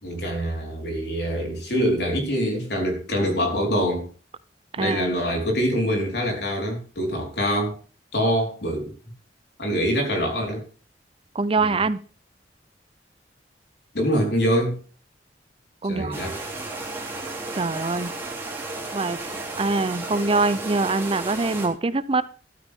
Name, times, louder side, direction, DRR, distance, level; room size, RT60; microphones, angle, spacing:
voice 1, 0.0-4.1 4.7-7.7 8.1-8.9 9.6-10.6 11.6-11.8 13.9-14.8 15.8-16.4, equal, 65° left, 4.4 m, -24 dB
voice 2, 4.7-5.1 11.3-12.0 15.8-16.2 17.5-18.1 18.9-19.2 19.6-22.2, right 3 dB, 30° right, 0.6 m, -24 dB
sound 1, 16.1-21.7, right 2 dB, 15° right, 3.0 m, -33 dB
13.5 x 12.5 x 3.6 m
head